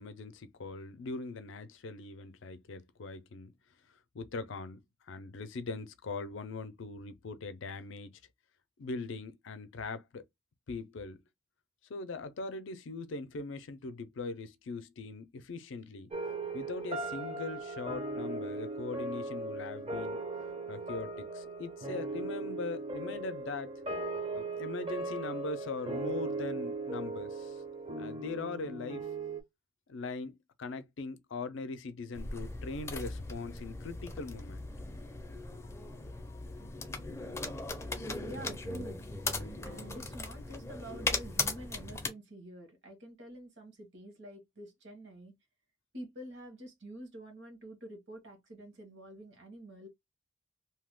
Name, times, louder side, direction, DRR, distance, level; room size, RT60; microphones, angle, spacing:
voice 1, 0.0-3.5 4.1-4.8 5.1-8.2 8.8-10.2 10.7-11.2 11.9-16.1 16.5-20.2 20.7-23.7 24.3-27.6 28.0-29.1 29.9-34.7, left 3 dB, 65° left, 0.5 m, -41 dB
sound 1, 16.1-29.4, right 2 dB, 30° right, 0.6 m, -38 dB
sound 2, 32.1-42.1, left 3 dB, 15° left, 0.5 m, -38 dB
voice 2, 38.2-45.3 45.9-49.9, right 1 dB, 60° right, 1.3 m, -48 dB
2.8 x 2.2 x 3.5 m
head